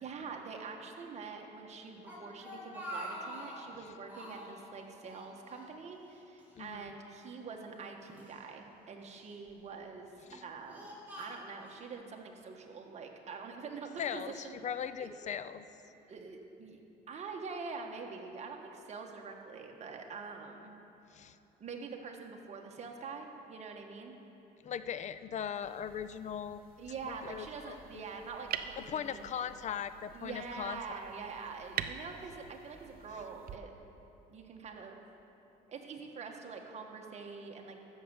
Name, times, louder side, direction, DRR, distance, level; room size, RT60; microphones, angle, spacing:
voice 1, 0.0-10.1 10.4-14.4 15.0-15.1 16.1-16.8 17.1-20.8 21.6-24.1 26.8-29.3 30.1-33.7 34.3-35.0 35.7-37.8, right 5 dB, 40° right, 2 dB, 1.5 m, -45 dB
Speech, 2.0-3.7 4.1-4.6 5.0-6.1 6.4-6.5 7.4-8.4 9.1-9.5 10.1-11.8, equal, 10° right, 3.0 m, -46 dB
voice 2, 6.6-6.9 10.3-10.4 14.0-15.6 21.1-21.4 24.6-26.6 27.0-28.0 28.8-30.8, left 8 dB, 45° left, 13 dB, 0.5 m, -39 dB
sound 1, 25.5-33.6, right 9 dB, 60° right, 0.6 m, -46 dB
13.5 x 6.6 x 7.7 m, 2.9 s
cardioid pair, 110°, 17 cm